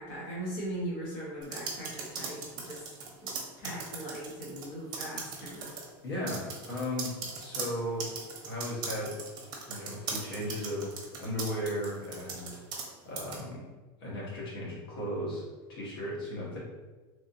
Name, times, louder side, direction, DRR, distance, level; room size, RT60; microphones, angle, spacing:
voice 1, 0.0-2.9 3.2-5.8, right 1 dB, 55° left, -5 dB, 1.1 m, -39 dB
sound 1, 1.4-4.7 4.9-5.9 6.3-12.9 13.2-13.4, right 5 dB, 35° right, 0.8 m, -38 dB
voice 2, 6.0-8.2 8.5-9.2 9.7-12.6 13.0-13.7 14.0-16.6, left 1 dB, 90° left, -5 dB, 1.3 m, -36 dB
3.3 x 2.6 x 2.6 m, 1.2 s
supercardioid pair, 145°, 12 cm